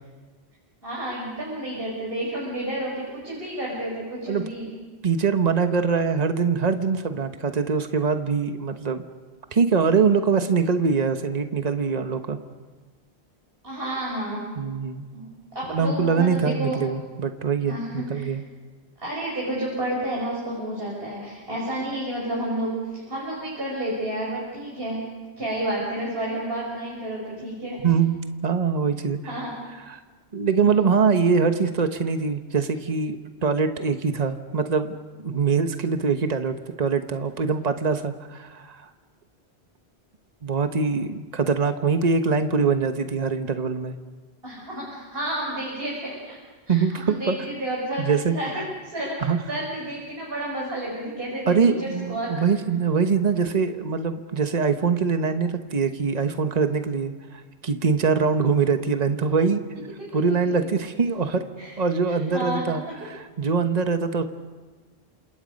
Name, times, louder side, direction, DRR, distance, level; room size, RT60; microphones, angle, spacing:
voice 1, 0.8-4.7 13.6-14.5 15.1-15.3 15.5-16.8 17.6-18.3 19.0-25.1 25.4-27.8 29.2-29.5 44.4-46.4 46.7-48.0 48.3-52.4 60.4-60.7 61.6-61.7 62.1-62.6, right 1 dB, 60° right, -5 dB, 6.4 m, -30 dB
voice 2, 5.0-9.0 9.5-12.4 14.6-15.0 15.7-18.4 27.8-29.2 29.9-30.0 30.3-33.2 33.4-38.8 40.4-43.9 46.7-47.3 48.0-48.3 49.2-49.4 51.5-57.1 57.6-59.6 60.1-61.4 61.8-64.2, right 5 dB, 40° right, 7 dB, 1.3 m, -23 dB
28.0 x 27.5 x 5.3 m, 1.3 s
omnidirectional pair, 1.1 m